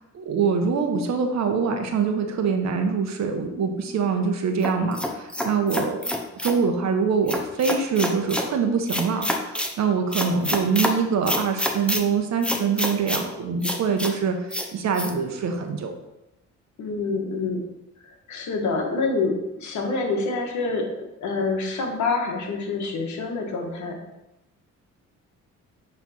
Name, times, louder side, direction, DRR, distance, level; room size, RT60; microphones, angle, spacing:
voice 1, 0.1-6.0 6.4-14.5 14.7-15.9, right 5 dB, 65° right, 5 dB, 1.0 m, -24 dB
sound 1, 4.6-6.6 7.3-8.5 8.9-9.7 10.1-10.9 11.3-12.0 12.4-13.2 13.6-14.1 14.5-14.7 14.9-15.1, left 1 dB, 5° left, 0.8 m, -27 dB
voice 2, 16.8-17.6 18.3-24.0, left 3 dB, 70° left, 2 dB, 1.5 m, -27 dB
8.5 x 3.4 x 4.2 m, 0.94 s
cardioid pair, 90°, 30 cm